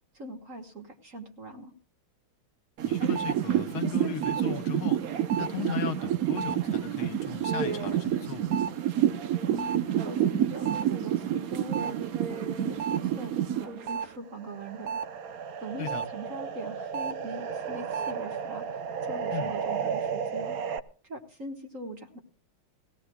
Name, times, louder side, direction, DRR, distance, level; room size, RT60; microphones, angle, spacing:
voice 1, 0.1-1.7 9.5-15.0 15.6-20.6 21.0-22.2, right 1 dB, 40° right, 4 dB, 1.7 m, -41 dB
voice 2, 2.8-5.0 5.4-8.6 15.8-16.0 19.3-19.5, left 12 dB, 75° left, 8 dB, 1.8 m, -37 dB
sound 1, 2.8-14.1 14.4-20.8, right 9 dB, 65° right, 0.9 m, -29 dB
20.5 x 16.5 x 2.3 m, 0.38 s
omnidirectional pair, 2.4 m